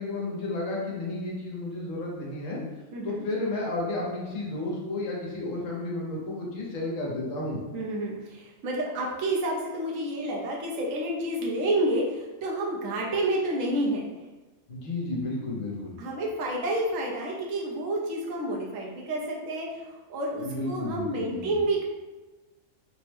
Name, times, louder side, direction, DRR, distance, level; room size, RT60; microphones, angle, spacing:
voice 1, 0.0-2.6 3.0-7.6 14.7-15.9 20.4-21.4, left 2 dB, 70° left, -3 dB, 1.1 m, -32 dB
voice 2, 2.9-3.2 7.7-14.0 16.0-21.8, right 1 dB, 75° right, -2 dB, 1.0 m, -29 dB
3.3 x 2.1 x 3.2 m, 1.2 s
omnidirectional pair, 1.4 m